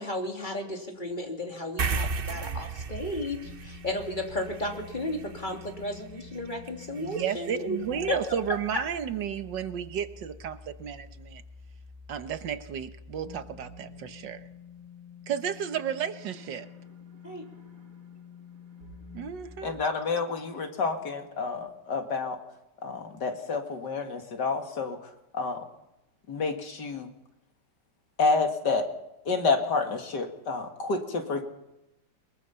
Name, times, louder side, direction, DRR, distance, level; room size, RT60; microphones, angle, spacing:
voice 1, 0.0-7.8 8.1-8.2 17.2-17.4, left 1 dB, 25° left, 2 dB, 3.1 m, -34 dB
sound 1, 1.8-8.6, right 4 dB, 45° right, 0.8 m, -36 dB
sound 2, 3.4-19.7, left 4 dB, 65° right, 3.4 m, -48 dB
voice 2, 7.0-11.4 12.1-14.4 15.3-16.7 19.1-19.8, right 8 dB, 85° right, 10 dB, 1.8 m, -33 dB
voice 3, 19.6-22.4 22.8-25.0 25.3-25.6 26.3-27.1 28.2-28.9 29.3-31.4, left 4 dB, 70° left, 5 dB, 2.6 m, -29 dB
22.5 x 21.5 x 5.7 m, 0.92 s
omnidirectional pair, 1.9 m